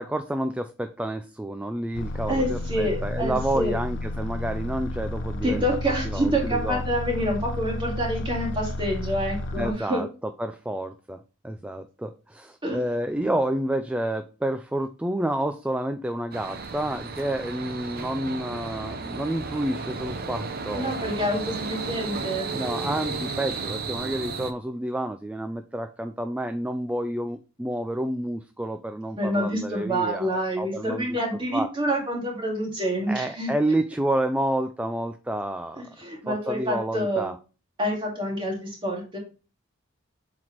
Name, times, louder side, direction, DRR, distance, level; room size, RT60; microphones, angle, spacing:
voice 1, 0.0-5.7 6.1-6.8 9.6-10.1 10.4-20.9 22.5-31.2 31.5-31.7 33.1-35.8 36.3-37.3, right 1 dB, 5° right, 8 dB, 0.3 m, -29 dB
sound 1, 1.9-9.7, left 1 dB, 60° left, 0.6 m, -32 dB
voice 2, 2.3-3.7 5.4-10.0 12.6-12.8 20.7-22.5 29.2-33.5 36.0-37.3 37.8-39.2, equal, 25° right, -1 dB, 2.2 m, -27 dB
sound 2, 16.3-24.5, right 4 dB, 45° right, 0.7 m, -33 dB
7.5 x 4.1 x 3.0 m, 0.33 s
head